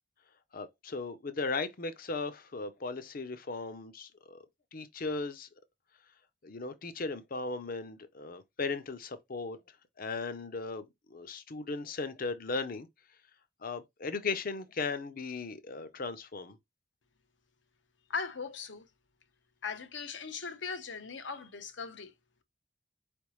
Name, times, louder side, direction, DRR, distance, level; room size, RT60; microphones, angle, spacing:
voice 1, 0.5-4.5 4.7-5.5 6.4-9.6 10.0-12.9 13.6-16.6, left 3 dB, 50° left, 0.7 m, -37 dB
voice 2, 18.1-18.8 19.6-22.1, left 5 dB, 80° left, 0.8 m, -39 dB
4.7 x 3.4 x 3.1 m
head